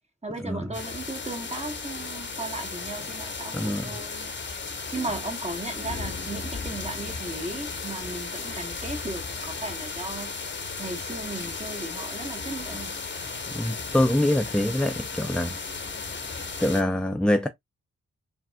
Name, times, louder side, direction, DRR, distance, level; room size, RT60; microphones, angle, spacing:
voice 1, 0.2-4.3 4.9-10.3 10.8-12.9, right 2 dB, 20° right, 1.2 m, -36 dB
sound 1, 0.7-16.8, left 4 dB, 35° left, 1.0 m, -35 dB
voice 2, 3.5-3.9 13.5-15.6 16.6-17.5, left 1 dB, 5° left, 0.4 m, -24 dB
3.4 x 2.4 x 2.2 m
cardioid pair, 50°, 31 cm